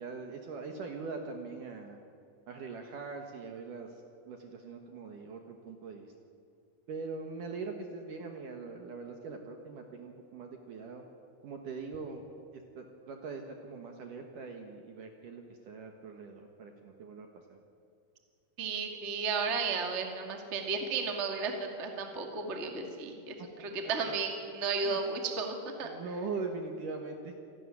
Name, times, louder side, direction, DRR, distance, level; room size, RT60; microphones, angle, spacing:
voice 1, 0.0-2.0 2.5-3.9 4.3-6.1 6.9-11.0 11.4-12.2 12.5-17.6 23.6-24.1 24.8-25.0 25.8-27.4, right 4 dB, 60° right, 4 dB, 2.3 m, -42 dB
voice 2, 18.6-23.3 23.6-25.9, right 4 dB, 35° right, 3 dB, 1.1 m, -34 dB
27.0 x 13.0 x 9.8 m, 2.5 s
omnidirectional pair, 5.5 m